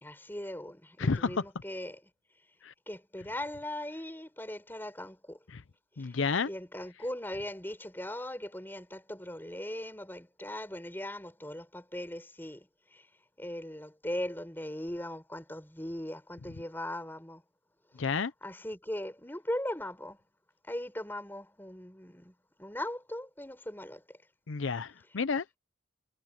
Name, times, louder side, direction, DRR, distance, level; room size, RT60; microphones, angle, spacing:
voice 1, 0.0-2.0 2.9-5.4 6.0-6.2 6.4-13.1 13.4-17.4 18.4-20.2 20.6-24.2, left 1 dB, 10° left, 4.2 m, -39 dB
voice 2, 1.0-1.4 2.6-2.7 5.5-5.6 6.0-6.5 18.0-18.3 24.5-25.4, left 5 dB, 75° left, 0.6 m, -30 dB
head